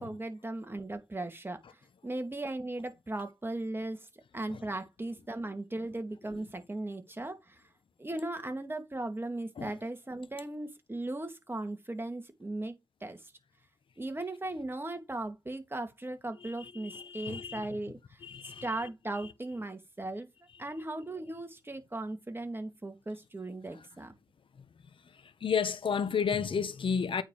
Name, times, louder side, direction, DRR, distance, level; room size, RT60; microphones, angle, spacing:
voice 1, 0.0-4.1 4.3-7.6 8.0-12.8 13.0-13.3 14.0-20.3 20.6-24.2, right 2 dB, 25° right, 2.3 m, -38 dB
voice 2, 16.4-17.7 18.2-18.9 23.7-23.8 24.6-24.7 25.0-27.2, left 6 dB, 85° left, 0.9 m, -33 dB
9.0 x 4.4 x 4.9 m
cardioid pair, 60°, 9 cm